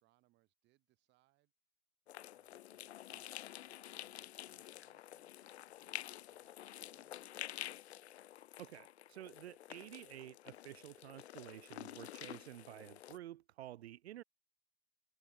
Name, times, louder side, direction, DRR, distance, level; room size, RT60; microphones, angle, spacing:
voice 1, 0.0-1.5 2.0-7.4, right 18 dB, 35° right, 4.6 m, -77 dB
sound 1, 2.1-13.2, left 13 dB, 85° left, 0.7 m, -50 dB
voice 2, 8.6-14.2, right 13 dB, 80° right, 0.6 m, -51 dB
hypercardioid pair, 135°, 32 cm